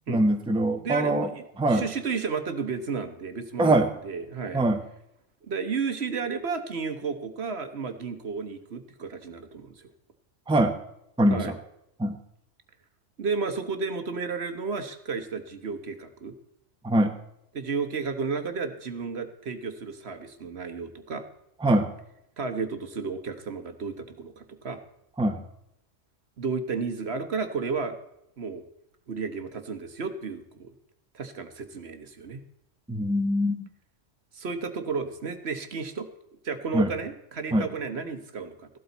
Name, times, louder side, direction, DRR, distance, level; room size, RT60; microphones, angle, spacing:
voice 1, 0.1-1.3 1.6-1.9 3.6-3.9 4.5-4.8 10.5-10.8 11.2-11.6 12.0-12.1 16.8-17.1 21.6-21.9 25.2-25.4 32.9-33.7 36.7-36.9 37.5-37.7, right 1 dB, 5° right, 6 dB, 0.8 m, -23 dB
voice 2, 0.8-1.4 1.7-4.6 5.5-9.8 11.3-11.5 13.2-16.3 17.5-21.3 22.4-24.8 26.4-28.0 28.4-28.6 29.1-30.7 31.1-32.4 34.3-36.1 36.4-38.7, right 5 dB, 55° right, 8 dB, 1.3 m, -32 dB
15.5 x 12.5 x 4.0 m, 0.80 s
omnidirectional pair, 1.3 m